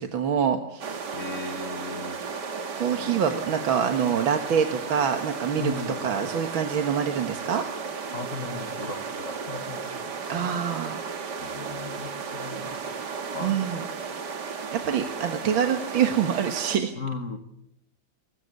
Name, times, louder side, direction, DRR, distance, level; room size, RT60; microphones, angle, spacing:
voice 1, 0.0-1.0 2.8-5.7 6.0-7.6 10.3-11.0 13.4-13.9 14.7-16.9, right 8 dB, 75° right, 6 dB, 2.2 m, -25 dB
sound 1, 0.8-16.8, right 5 dB, 55° right, 2.2 m, -34 dB
voice 2, 1.1-2.2 2.9-3.3 3.8-4.0 5.5-6.1 8.1-10.6 11.4-13.7 16.9-17.4, left 3 dB, 40° left, 7 dB, 1.7 m, -37 dB
24.0 x 20.0 x 8.3 m, 0.81 s
omnidirectional pair, 2.2 m